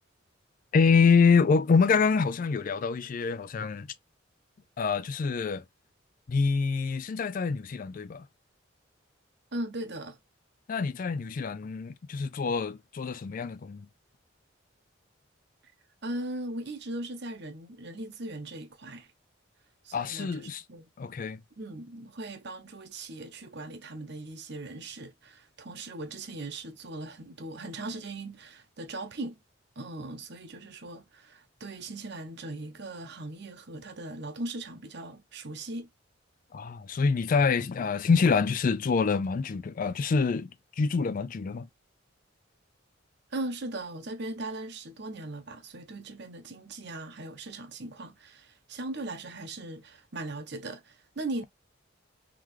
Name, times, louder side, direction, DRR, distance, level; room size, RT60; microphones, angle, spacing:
voice 1, 0.7-3.9 4.8-5.6 6.3-8.3 10.7-13.9 19.9-20.6 21.0-21.4 36.5-40.5 40.8-41.7, left 5 dB, 45° left, 0.3 m, -26 dB
voice 2, 9.5-10.2 16.0-19.1 19.8-20.9 21.6-29.4 29.8-35.9 43.3-51.4, right 2 dB, 55° right, 0.9 m, -39 dB
3.7 x 3.1 x 3.1 m
head